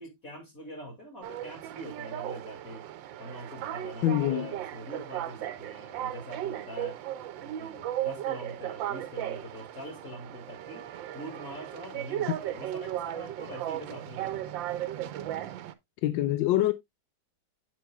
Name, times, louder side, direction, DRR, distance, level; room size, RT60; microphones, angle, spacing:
voice 1, 0.0-2.9 3.2-7.0 7.4-10.8 11.1-14.6, equal, 45° left, 2.9 m, -44 dB
sound 1, 1.2-15.7, right 12 dB, 85° right, 1.4 m, -36 dB
voice 2, 4.0-4.5 16.0-16.7, left 13 dB, 90° left, 1.3 m, -25 dB
8.1 x 7.6 x 2.3 m
omnidirectional pair, 2.0 m